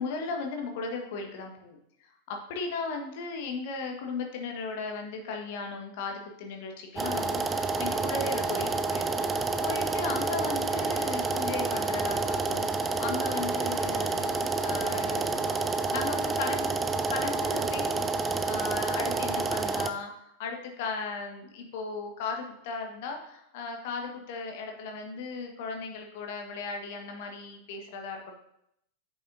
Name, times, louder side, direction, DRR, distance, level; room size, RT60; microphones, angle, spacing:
voice 1, 0.0-1.8 2.0-15.5 15.9-16.7 17.1-28.4, left 4 dB, 50° left, 3 dB, 1.4 m, -36 dB
sound 1, 7.0-19.9, right 3 dB, 15° right, 0.5 m, -29 dB
8.3 x 6.5 x 2.6 m, 0.76 s
figure-of-eight pair, 90°, 0 cm